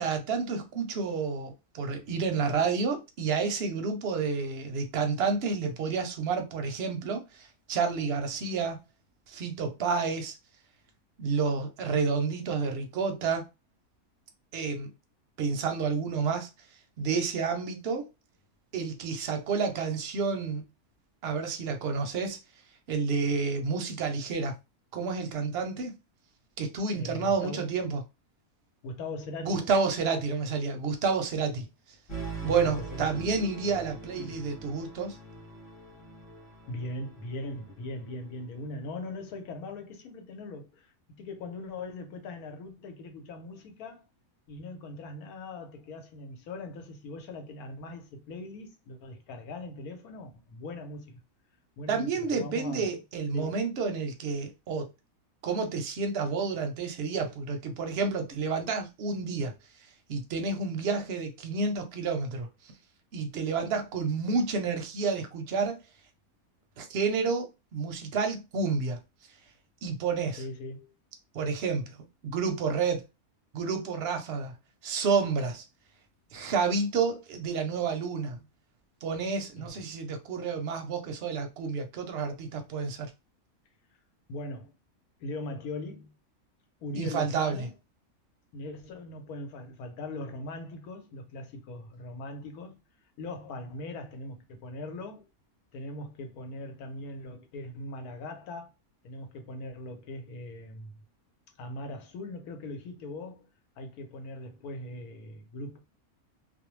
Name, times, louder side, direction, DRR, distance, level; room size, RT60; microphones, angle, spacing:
voice 1, 0.0-8.8 9.3-10.3 11.2-13.5 14.5-14.9 15.4-16.5 17.0-18.1 18.7-20.6 21.2-22.4 22.9-24.5 24.9-25.9 26.6-28.0 29.4-31.7 32.4-35.2 51.9-54.9 55.4-59.5 60.1-62.5 63.1-65.8 66.8-69.0 69.8-70.4 71.3-72.0 72.2-73.0 73.5-74.5 74.8-75.6 76.3-78.4 79.0-83.1 86.9-87.7, right 5 dB, 60° right, 0.7 m, -30 dB
voice 2, 26.9-27.7 28.8-29.7 32.4-33.2 34.2-34.4 36.7-44.0 44.5-51.2 51.8-52.9 53.3-53.6 70.4-70.9 79.6-79.8 84.3-84.7 85.2-86.1 86.8-87.7 88.5-92.8 93.2-95.3 95.7-98.7 99.0-101.0 101.6-103.5 103.8-105.8, left 2 dB, 90° left, 1.2 m, -40 dB
sound 1, 32.1-38.9, right 3 dB, 35° left, 1.2 m, -43 dB
2.6 x 2.0 x 3.0 m
omnidirectional pair, 1.5 m